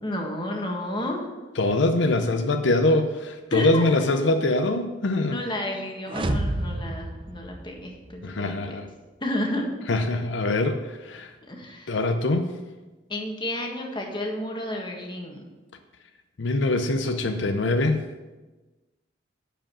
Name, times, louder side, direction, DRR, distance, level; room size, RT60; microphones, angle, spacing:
voice 1, 0.0-1.3 3.5-4.1 5.3-8.8 9.2-9.7 11.5-12.0 13.1-15.4, left 1 dB, 25° left, 1 dB, 1.6 m, -31 dB
voice 2, 1.6-5.4 8.2-8.9 9.9-11.3 11.9-12.6 16.4-18.0, left 2 dB, 80° left, 7 dB, 0.7 m, -23 dB
sound 1, 6.1-8.2, right 1 dB, 30° right, 0.6 m, -29 dB
10.0 x 5.1 x 7.5 m, 1.2 s
head